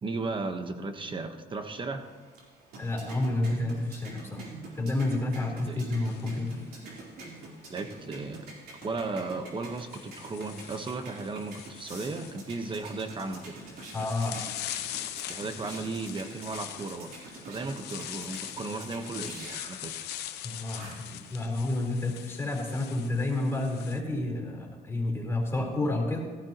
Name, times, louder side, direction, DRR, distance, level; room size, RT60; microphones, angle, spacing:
voice 1, 0.0-2.1 5.6-5.8 7.7-8.5 8.8-13.6 15.3-20.1, right 3 dB, 30° right, 7 dB, 1.3 m, -35 dB
sound 1, 2.0-21.2, right 2 dB, 65° right, 4.0 m, -47 dB
voice 2, 2.7-4.5 4.8-6.7 13.9-14.4 20.4-26.2, left 2 dB, 15° left, -1 dB, 4.2 m, -30 dB
sound 2, 5.9-7.4 8.7-8.9 9.6-24.0, left 12 dB, 80° left, 0.8 m, -42 dB
16.5 x 14.5 x 3.1 m, 1.4 s
cardioid pair, 110°, 17 cm